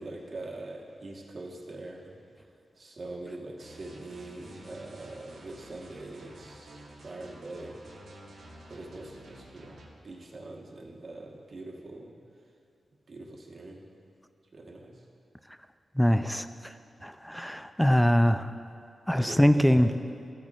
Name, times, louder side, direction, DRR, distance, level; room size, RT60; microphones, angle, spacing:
voice 1, 0.0-2.2 2.8-7.8 8.7-12.1 13.1-13.9 14.5-15.0 19.1-20.0, right 2 dB, 55° right, -2 dB, 1.4 m, -43 dB
sound 1, 3.6-9.9, right 1 dB, 85° right, 1.3 m, -50 dB
voice 2, 16.0-16.7 17.0-18.5 19.1-19.9, equal, 5° left, 10 dB, 0.4 m, -23 dB
13.5 x 8.9 x 2.5 m, 2.5 s
cardioid pair, 80°, 0 cm